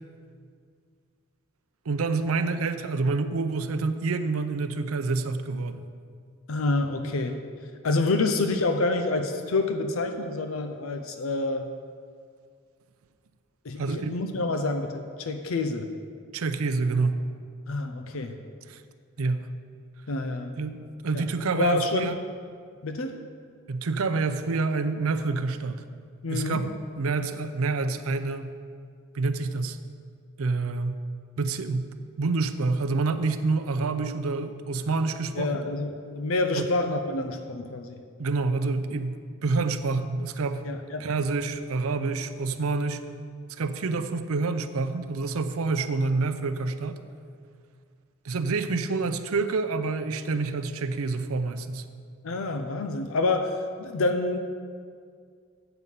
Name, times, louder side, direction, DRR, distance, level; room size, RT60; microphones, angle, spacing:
voice 1, 1.9-5.8 13.8-14.2 16.3-17.2 18.7-18.8 19.2-19.5 20.6-22.2 23.7-25.8 26.3-26.7 27.0-28.5 29.1-29.8 30.4-31.0 31.4-35.6 36.6-36.7 38.2-40.7 41.0-43.0 43.6-47.0 48.2-51.9, right 3 dB, 90° right, 9 dB, 0.6 m, -27 dB
voice 2, 6.5-7.4 7.8-11.7 13.6-15.9 17.7-18.4 20.1-20.6 21.1-21.2 21.5-22.1 22.8-23.2 26.2-26.6 35.4-38.0 40.6-41.1 52.2-54.4, left 2 dB, 75° left, 7 dB, 0.6 m, -27 dB
7.9 x 5.5 x 7.4 m, 2.1 s
head